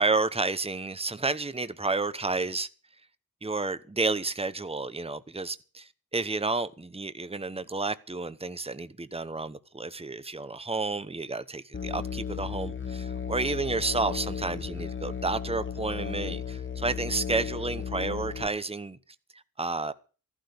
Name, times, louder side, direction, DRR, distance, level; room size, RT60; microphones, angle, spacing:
voice 1, 0.0-2.7 3.4-19.0 19.3-19.9, right 3 dB, 15° right, 0.9 m, -31 dB
Musical instrument, 11.7-18.5, left 7 dB, 35° left, 1.0 m, -35 dB
14.0 x 12.0 x 6.8 m
wide cardioid pair, 55°, 35 cm